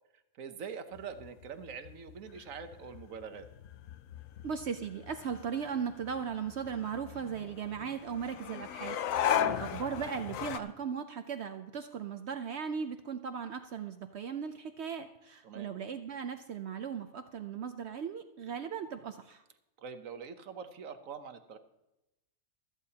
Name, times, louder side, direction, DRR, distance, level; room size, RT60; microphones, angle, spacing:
voice 1, 0.0-3.5 9.3-9.6 15.4-15.7 19.8-21.6, right 6 dB, 85° right, 9 dB, 1.3 m, -44 dB
sound 1, 1.0-10.6, left 9 dB, 90° left, 1.0 m, -37 dB
voice 2, 4.4-19.4, right 7 dB, 65° right, 8 dB, 0.9 m, -38 dB
16.5 x 13.5 x 2.8 m, 0.92 s
omnidirectional pair, 1.3 m